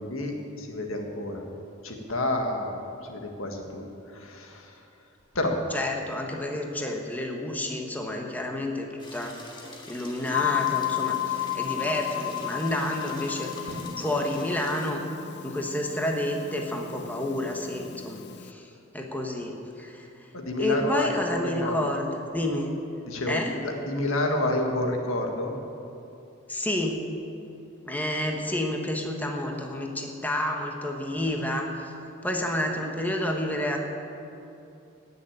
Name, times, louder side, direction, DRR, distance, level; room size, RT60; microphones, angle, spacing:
voice 1, 0.0-1.4 1.8-2.7 3.0-3.9 4.1-4.7 5.3-5.6 20.3-21.8 23.1-25.5, left 1 dB, 80° left, 3 dB, 1.8 m, -29 dB
voice 2, 5.7-9.4 9.9-15.0 15.4-20.1 20.6-22.7 23.3-23.6 26.5-27.0 27.8-31.7 32.2-33.8, left 1 dB, 10° left, 1 dB, 1.3 m, -30 dB
sound 1, 9.0-14.9, left 2 dB, 25° left, 1.8 m, -45 dB
sound 2, 10.3-18.5, left 14 dB, 55° left, 0.5 m, -33 dB
Drum, 13.7-15.6, equal, 70° right, 2.2 m, -43 dB
17.5 x 6.9 x 8.8 m, 2.8 s
head